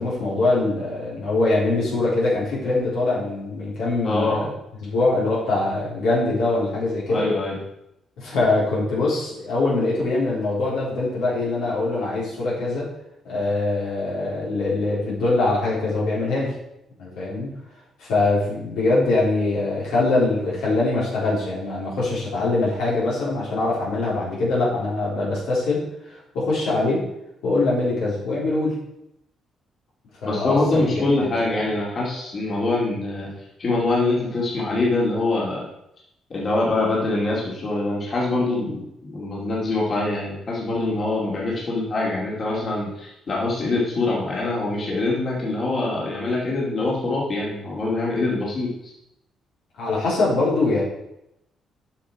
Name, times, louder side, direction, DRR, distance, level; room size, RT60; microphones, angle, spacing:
voice 1, 0.0-4.5 4.8-7.2 8.2-12.9 13.2-16.5 17.0-17.5 18.0-27.1 27.4-28.8 30.2-31.3 49.8-50.8, left 2 dB, 90° left, -6 dB, 3.8 m, -23 dB
voice 2, 4.0-4.5 7.1-7.6 30.2-33.3 33.6-35.7 36.3-48.9, left 2 dB, 45° left, -4 dB, 2.5 m, -24 dB
8.4 x 6.0 x 4.8 m, 0.83 s
cardioid pair, 90°, 0 cm